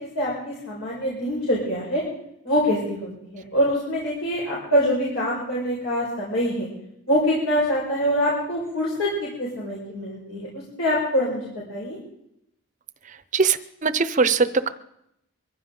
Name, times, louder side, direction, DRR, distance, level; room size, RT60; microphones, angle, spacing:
voice 1, 0.0-2.0 2.4-6.7 7.1-12.0, equal, 85° left, -6 dB, 5.3 m, -25 dB
voice 2, 13.3-14.7, right 5 dB, 35° right, 13 dB, 0.7 m, -21 dB
23.5 x 15.5 x 3.9 m, 0.79 s
head